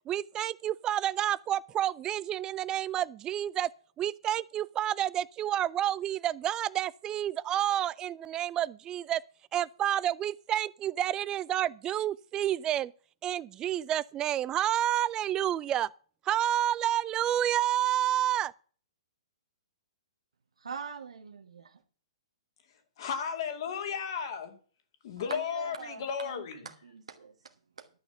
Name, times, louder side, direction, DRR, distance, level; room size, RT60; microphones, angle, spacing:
voice 1, 0.1-3.7 4.0-9.2 9.5-12.9 13.2-15.9 16.2-18.5, right 11 dB, 20° right, 0.4 m, -29 dB
voice 2, 20.6-21.8 25.2-27.9, right 6 dB, 80° right, 1.2 m, -44 dB
voice 3, 23.0-24.6 25.0-26.7, left 7 dB, 55° left, 2.4 m, -34 dB
11.5 x 6.3 x 6.9 m
hypercardioid pair, 125°, 3 cm